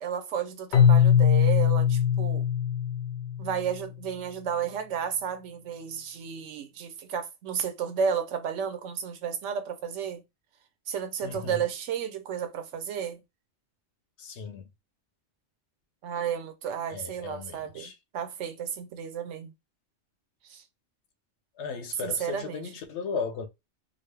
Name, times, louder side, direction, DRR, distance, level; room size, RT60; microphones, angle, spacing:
voice 1, 0.0-2.4 3.4-10.2 10.9-13.2 16.0-19.5 20.4-20.6 22.0-22.6, right 7 dB, 90° right, 1.0 m, -32 dB
Keyboard (musical), 0.7-3.7, left 8 dB, 55° left, 0.5 m, -21 dB
voice 2, 11.2-11.6 14.2-14.7 16.9-17.9 21.6-23.5, left 5 dB, 75° left, 1.0 m, -36 dB
3.8 x 2.1 x 3.3 m
omnidirectional pair, 1.2 m